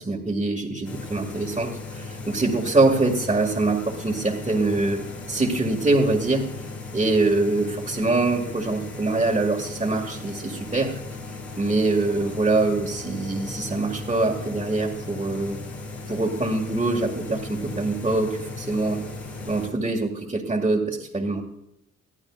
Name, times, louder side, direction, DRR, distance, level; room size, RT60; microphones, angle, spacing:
voice 1, 0.0-5.0 5.3-6.5 6.9-11.0 11.6-15.6 16.1-19.0 19.5-21.4, right 2 dB, 20° right, -4 dB, 2.0 m, -24 dB
sound 1, 0.8-19.7, left 3 dB, 65° left, 5.0 m, -37 dB
21.5 x 14.0 x 2.4 m, 0.84 s
cardioid pair, 90°, 30 cm